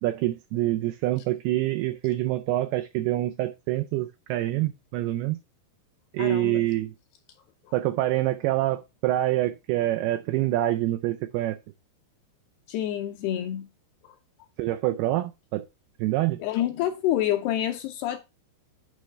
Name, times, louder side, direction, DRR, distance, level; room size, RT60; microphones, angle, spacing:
voice 1, 0.0-5.4 6.1-6.9 7.7-11.6 14.6-15.7 16.0-16.4, right 15 dB, 90° right, 2.2 m, -26 dB
voice 2, 6.2-6.7 7.6-7.7 12.7-13.7 16.4-18.2, left 12 dB, 80° left, 2.4 m, -28 dB
9.2 x 3.3 x 6.2 m
omnidirectional pair, 5.2 m